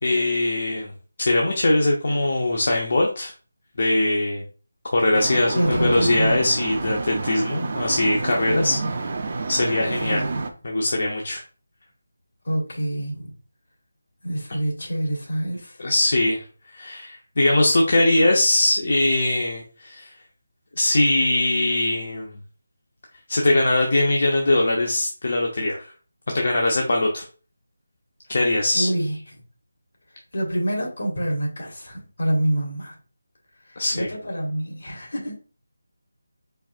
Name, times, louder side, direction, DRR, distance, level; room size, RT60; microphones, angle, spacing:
voice 1, 0.0-0.9 1.2-3.3 3.8-4.4 4.9-8.8 9.5-10.2 10.6-11.4 15.8-16.4 16.7-20.1 20.8-22.3 23.3-25.9 26.3-27.3 28.3-28.9 33.8-34.1, left 2 dB, 50° left, 0.8 m, -21 dB
sound 1, 5.1-10.5, right 3 dB, 35° right, 0.5 m, -29 dB
voice 2, 5.5-6.5 8.5-8.9 10.0-10.3 12.5-13.3 14.2-15.8 28.7-29.2 30.3-33.0 33.9-35.4, right 1 dB, 65° left, 2.0 m, -26 dB
4.7 x 4.6 x 2.4 m
figure-of-eight pair, 175°, 0 cm